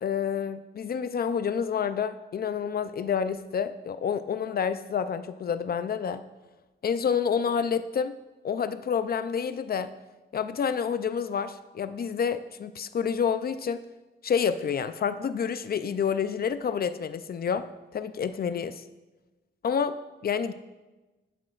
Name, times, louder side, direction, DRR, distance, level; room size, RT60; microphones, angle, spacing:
voice 1, 0.0-6.2 6.8-8.1 8.4-9.9 10.3-13.8 14.2-18.8 19.6-20.0 20.2-20.5, left 7 dB, 50° left, 12 dB, 0.5 m, -28 dB
11.5 x 9.6 x 2.4 m, 1.1 s
cardioid pair, 95°, 19 cm